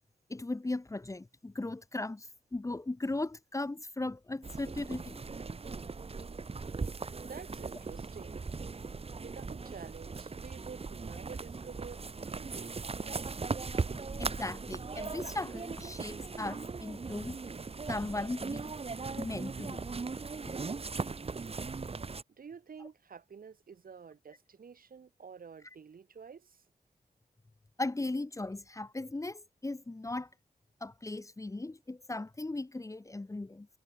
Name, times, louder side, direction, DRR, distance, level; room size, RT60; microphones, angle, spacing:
voice 1, 0.3-5.2 14.1-17.4 17.9-18.7 19.2-19.9 20.5-20.6 27.8-30.3 30.8-33.7, left 2 dB, 20° left, 1.2 m, -37 dB
sound 1, 4.4-22.2, right 4 dB, 40° right, 1.8 m, -39 dB
voice 2, 7.2-8.4 9.2-12.0 12.3-13.4 22.4-26.6, right 6 dB, 75° right, 7.7 m, -49 dB
wide cardioid pair, 105°, 15 cm